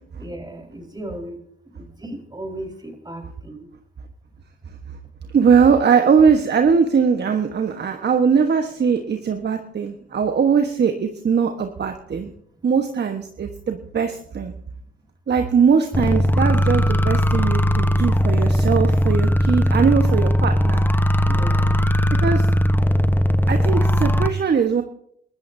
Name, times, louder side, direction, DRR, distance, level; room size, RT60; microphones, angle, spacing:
voice 1, 0.2-1.4 1.7-3.7 21.2-21.8, right 1 dB, 15° right, 2 dB, 4.8 m, -35 dB
voice 2, 5.3-12.3 12.6-14.5 15.3-20.8 22.2-22.4 23.5-24.8, right 6 dB, 35° right, 6 dB, 1.3 m, -20 dB
sound 1, 15.9-24.3, equal, 5° left, 1.1 m, -18 dB
29.0 x 13.5 x 2.8 m, 0.70 s
hypercardioid pair, 65°, 30 cm